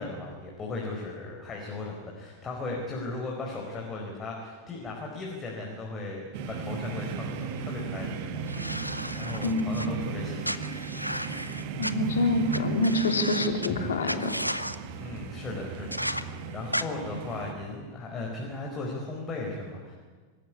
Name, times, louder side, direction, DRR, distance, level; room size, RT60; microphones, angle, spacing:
voice 1, 0.0-8.8 9.2-10.7 13.7-13.8 15.0-19.9, left 2 dB, 20° left, -1 dB, 4.8 m, -37 dB
sound 1, 6.3-17.5, right 5 dB, 50° right, 2.0 m, -36 dB
sound 2, 8.5-9.9 10.4-11.9 12.5-12.6 12.8-13.7 14.0-14.8 15.9-16.2 16.7-16.8, equal, 90° right, 0.9 m, -33 dB
voice 2, 9.4-9.9 11.8-14.3, left 2 dB, 65° left, 5 dB, 3.1 m, -26 dB
25.5 x 15.5 x 9.9 m, 1.5 s
figure-of-eight pair, 90°, 0 cm